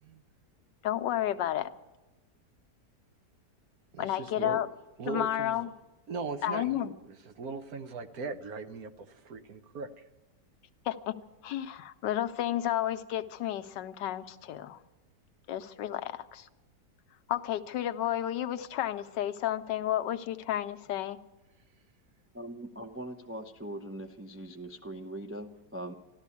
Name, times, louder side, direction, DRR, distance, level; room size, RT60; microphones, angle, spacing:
voice 1, 0.8-1.7 4.0-4.7 5.1-5.7 6.4-6.9 10.9-11.1 11.4-14.8 15.5-16.5 17.3-21.2, left 12 dB, 85° left, 10 dB, 1.4 m, -31 dB
voice 2, 3.9-4.6 5.0-5.7 6.1-10.1, right 4 dB, 60° right, 8 dB, 1.4 m, -39 dB
voice 3, 22.3-25.9, right 1 dB, 20° right, 2 dB, 0.3 m, -41 dB
13.5 x 13.0 x 8.3 m, 1.1 s
omnidirectional pair, 1.8 m